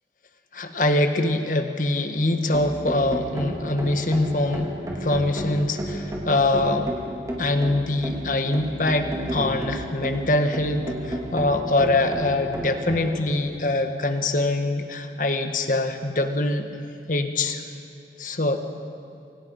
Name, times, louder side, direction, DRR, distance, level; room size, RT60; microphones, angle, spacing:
voice 1, 0.5-4.7 5.0-6.9 7.4-16.7 17.1-17.6 18.2-18.6, left 2 dB, 45° left, 6 dB, 1.8 m, -24 dB
sound 1, 2.2-13.1, equal, 20° right, 4.1 m, -32 dB
29.5 x 25.0 x 5.6 m, 2.6 s
head